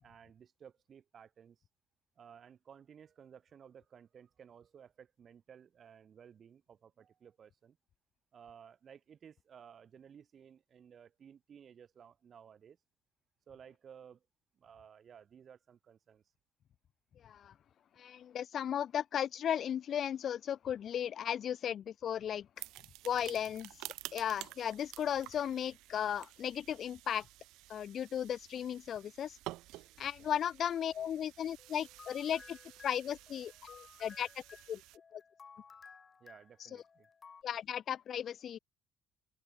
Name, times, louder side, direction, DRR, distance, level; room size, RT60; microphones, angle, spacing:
voice 1, 0.0-1.6 2.2-7.8 8.3-12.8 13.5-14.3 14.5-16.2 23.3-23.4 30.2-30.3 36.2-37.1, right 8 dB, 40° right, 2.1 m, -57 dB
voice 2, 18.0-22.5 23.0-23.7 24.1-27.3 27.7-29.4 30.0-32.6 32.8-34.3 34.7-34.8 35.1-35.2 36.7-36.8 37.4-38.6, left 9 dB, 45° left, 0.4 m, -36 dB
sound 1, 22.6-35.0, right 18 dB, 90° right, 2.3 m, -51 dB
sound 2, 31.6-37.4, left 5 dB, 30° left, 2.0 m, -57 dB
open air
cardioid pair, 145°, 0 cm